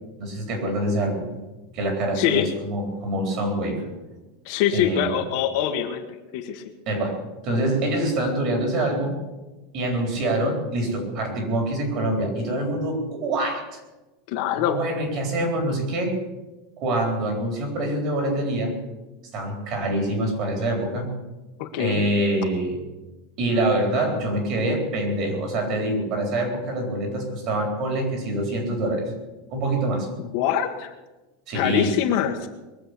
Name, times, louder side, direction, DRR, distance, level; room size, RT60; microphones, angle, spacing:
voice 1, 0.2-1.3 1.7-3.8 4.7-5.1 6.9-7.2 7.4-9.2 9.7-13.8 14.6-16.2 16.8-18.8 19.3-21.1 21.8-22.8 23.4-29.1 29.5-30.1 31.5-31.9, right 1 dB, 35° right, 2 dB, 3.9 m, -25 dB
voice 2, 2.1-2.5 4.4-6.6 14.3-14.9 21.6-22.0 30.3-30.9 31.5-32.5, left 10 dB, 45° left, 4 dB, 1.4 m, -24 dB
22.0 x 7.6 x 8.2 m, 1.1 s
supercardioid pair, 180°, 0 cm